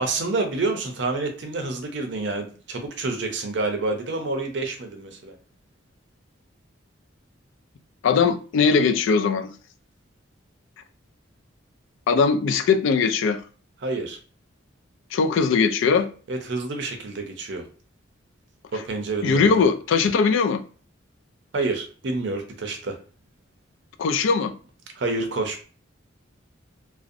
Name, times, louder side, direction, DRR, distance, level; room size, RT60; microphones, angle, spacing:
voice 1, 0.0-5.3 13.8-14.2 16.3-17.6 18.7-19.6 21.5-23.0 25.0-25.6, right 3 dB, 60° right, 0.5 m, -28 dB
voice 2, 8.0-9.5 12.1-13.4 15.1-16.1 19.2-20.6 24.0-24.5, left 5 dB, 75° left, 0.3 m, -20 dB
2.4 x 2.0 x 2.5 m
head